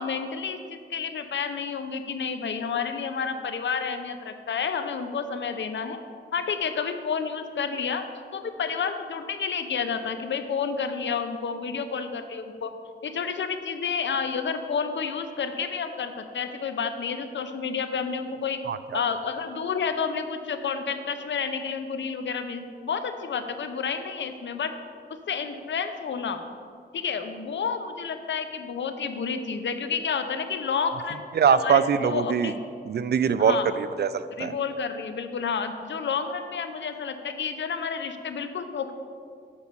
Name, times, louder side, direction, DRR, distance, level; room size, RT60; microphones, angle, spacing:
voice 1, 0.0-6.0 6.3-8.1 8.3-12.7 13.0-18.6 18.9-24.7 25.3-26.4 26.9-31.2 31.5-32.6 33.4-33.7 34.4-38.9, left 6 dB, 75° left, 8 dB, 0.7 m, -30 dB
voice 2, 18.7-19.0 31.3-32.5 32.9-34.5, right 7 dB, 60° right, 13 dB, 0.4 m, -23 dB
7.1 x 5.2 x 6.8 m, 2.3 s
cardioid pair, 70°, 19 cm